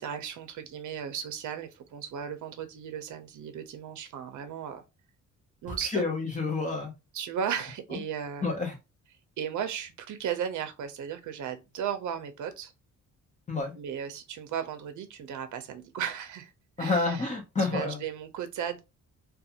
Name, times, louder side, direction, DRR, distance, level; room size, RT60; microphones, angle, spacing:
voice 1, 0.0-4.8 5.6-6.0 7.1-8.5 9.4-12.7 13.7-16.5 16.8-17.3 17.6-18.8, right 8 dB, 65° right, 0.6 m, -35 dB
voice 2, 5.7-6.9 7.9-8.0 8.4-8.7 13.5-13.7 16.8-18.0, left 3 dB, 25° left, 0.6 m, -29 dB
2.5 x 2.3 x 2.7 m
wide cardioid pair, 170°, 32 cm